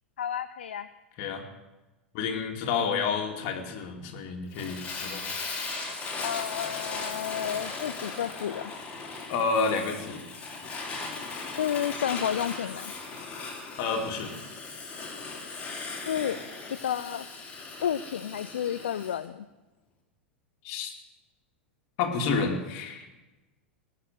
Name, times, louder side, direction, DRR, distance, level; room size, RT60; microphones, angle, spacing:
voice 1, 0.2-0.9 6.2-8.7 11.6-12.9 16.1-16.4 16.8-17.3 17.8-19.5, left 9 dB, 70° left, 12 dB, 0.5 m, -31 dB
voice 2, 2.1-5.2 9.3-10.2 13.8-14.3 20.6-20.9 22.0-23.1, left 5 dB, 50° left, 3 dB, 2.5 m, -29 dB
Fire, 4.5-19.2, left 3 dB, 20° left, 3.9 m, -38 dB
20.5 x 6.9 x 7.8 m, 1.1 s
figure-of-eight pair, 90°, 6 cm